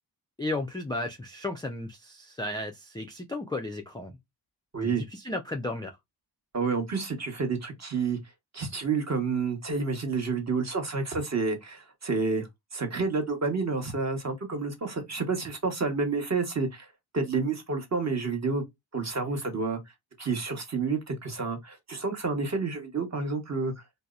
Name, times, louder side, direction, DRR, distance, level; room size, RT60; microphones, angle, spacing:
voice 1, 0.4-4.1 4.8-6.0, left 2 dB, 10° left, 0.3 m, -34 dB
voice 2, 6.5-8.2 8.5-16.9 17.1-18.6 18.9-19.8 20.2-23.7, right 4 dB, 35° right, 0.9 m, -29 dB
2.7 x 2.0 x 2.3 m
cardioid pair, 60°, 47 cm